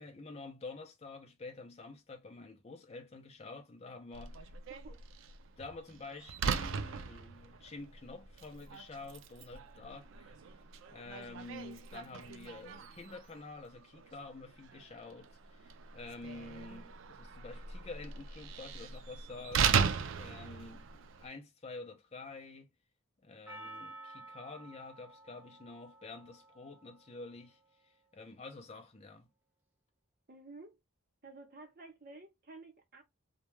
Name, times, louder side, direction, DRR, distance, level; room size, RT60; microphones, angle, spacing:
voice 1, 0.0-4.5 5.6-10.3 10.9-22.7 23.2-29.3, left 3 dB, 30° left, 0.5 m, -49 dB
Slam, 4.1-21.3, right 6 dB, 65° right, 0.4 m, -38 dB
voice 2, 4.7-5.0 30.3-30.8 31.2-33.0, right 3 dB, 45° right, 0.8 m, -52 dB
Percussion, 23.5-27.8, right 2 dB, 10° right, 0.6 m, -52 dB
2.2 x 2.2 x 3.0 m
head